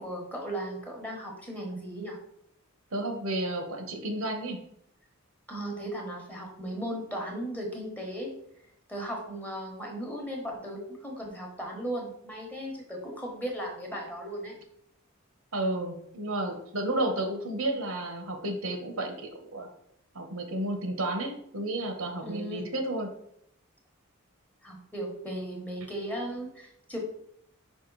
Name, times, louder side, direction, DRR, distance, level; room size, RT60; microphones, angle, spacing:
voice 1, 0.0-2.2 5.5-8.3 8.9-14.6 22.2-22.6 24.6-27.0, right 1 dB, 5° left, 0 dB, 1.2 m, -36 dB
voice 2, 2.9-4.6 15.5-19.1 19.5-19.7 20.1-23.1, right 1 dB, 75° right, 4 dB, 1.2 m, -32 dB
5.2 x 5.1 x 4.0 m, 0.73 s
head